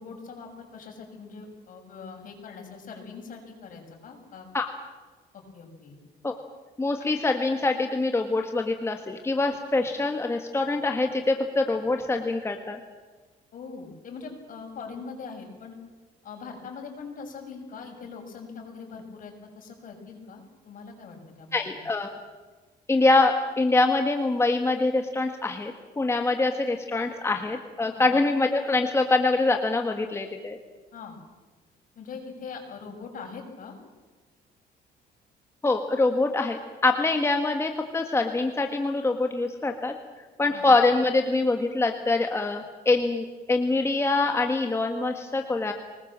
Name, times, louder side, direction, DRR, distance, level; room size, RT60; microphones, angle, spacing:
voice 1, 0.0-4.5 5.3-6.0 13.5-15.8 16.2-21.8 27.9-28.1 30.9-31.2 32.0-33.8 40.5-40.6, left 5 dB, 55° left, 2 dB, 7.0 m, -42 dB
voice 2, 6.8-12.8 21.5-22.1 22.9-30.6 35.6-39.9 40.4-45.7, left 3 dB, 15° left, 4 dB, 1.6 m, -24 dB
25.0 x 20.0 x 7.5 m, 1.3 s
cardioid pair, 130°, 17 cm